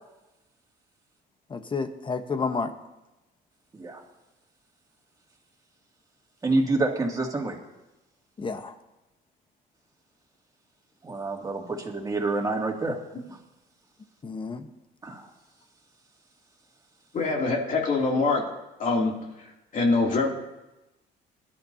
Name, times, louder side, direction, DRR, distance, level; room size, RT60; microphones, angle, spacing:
voice 1, 1.5-2.7 8.4-8.7 14.2-14.7, left 4 dB, 30° left, 8 dB, 1.0 m, -30 dB
voice 2, 6.4-7.6 11.0-12.9 15.0-15.2, right 2 dB, 20° right, 0 dB, 2.4 m, -27 dB
voice 3, 17.1-18.5 18.8-19.2 19.7-20.3, left 3 dB, 50° left, -1 dB, 2.7 m, -24 dB
22.0 x 12.0 x 2.8 m, 0.98 s
cardioid pair, 110°, 17 cm